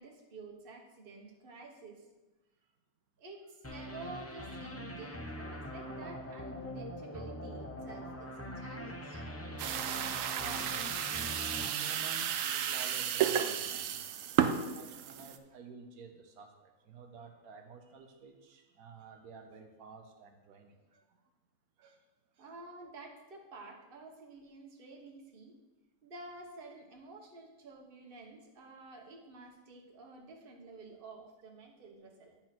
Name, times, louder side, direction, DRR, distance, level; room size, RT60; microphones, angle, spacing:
voice 1, 0.0-2.1 3.2-9.2 22.4-25.6 26.0-32.4, right 3 dB, 40° right, 1 dB, 1.3 m, -50 dB
sound 1, 3.6-12.7, equal, 20° left, 0.3 m, -43 dB
sound 2, 9.6-15.4, right 9 dB, 70° right, 0.9 m, -33 dB
voice 2, 10.3-14.0 14.4-21.2 21.8-22.0 22.3-22.4, right 5 dB, 90° right, 4 dB, 1.4 m, -51 dB
9.8 x 4.4 x 5.9 m, 1.1 s
omnidirectional pair, 1.5 m